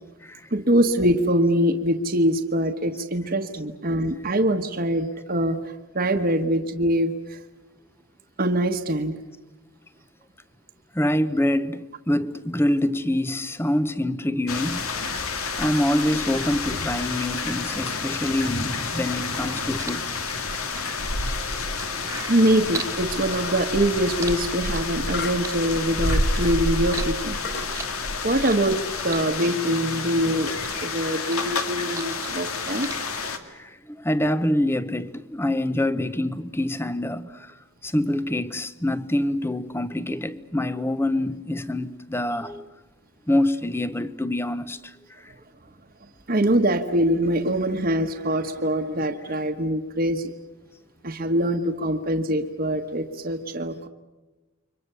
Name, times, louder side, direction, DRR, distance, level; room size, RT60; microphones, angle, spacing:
voice 1, 0.5-7.4 8.4-9.2 22.3-27.4 28.2-30.5 30.8-32.9 46.3-50.3 51.0-53.9, right 1 dB, 45° right, 1.3 m, -23 dB
voice 2, 10.9-14.9 15.6-20.1 33.5-37.6 37.8-42.7 43.3-45.3, left 1 dB, 10° left, 0.8 m, -26 dB
sound 1, 14.5-33.4, left 3 dB, 90° left, 2.3 m, -29 dB
sound 2, 18.5-23.0 23.3-25.1 25.4-26.5 26.9-28.8 29.1-30.2 30.5-32.5 32.8-32.9, right 4 dB, 15° right, 1.5 m, -37 dB
sound 3, 23.3-23.8 25.1-26.3 26.8-26.9 27.4-27.8, left 4 dB, 50° left, 2.1 m, -36 dB
30.0 x 24.5 x 6.9 m
head